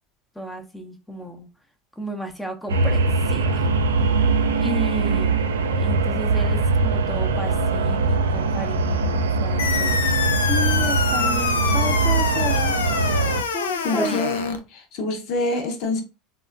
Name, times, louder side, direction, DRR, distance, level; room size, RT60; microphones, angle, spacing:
voice 1, 0.4-1.5 2.0-3.7 4.2-4.3 4.6-5.4 5.8-12.7 13.5-14.3, equal, 5° left, 0.6 m, -33 dB
sound 1, 2.7-13.4, right 3 dB, 85° right, 0.3 m, -22 dB
sound 2, 9.6-14.6, left 6 dB, 80° left, 0.3 m, -25 dB
voice 2, 13.8-16.0, left 2 dB, 60° left, 0.7 m, -26 dB
3.5 x 2.2 x 2.4 m
hypercardioid pair, 80°, 0 cm